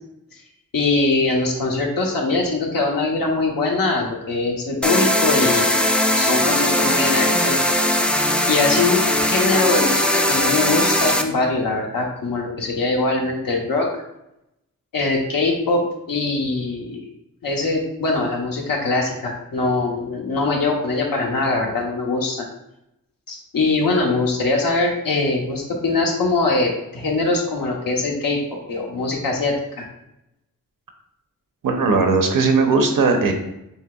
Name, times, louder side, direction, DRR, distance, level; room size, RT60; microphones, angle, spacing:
voice 1, 0.7-5.9 6.1-7.6 8.1-13.9 14.9-15.8 16.1-17.0 17.4-22.4 23.3-28.4 28.7-29.8, left 3 dB, 80° left, 0 dB, 1.0 m, -22 dB
sound 1, 4.8-11.2, left 1 dB, 5° left, 0.3 m, -19 dB
voice 2, 31.6-33.3, right 4 dB, 75° right, 5 dB, 0.7 m, -18 dB
5.5 x 3.3 x 2.3 m, 0.84 s
wide cardioid pair, 85°, 34 cm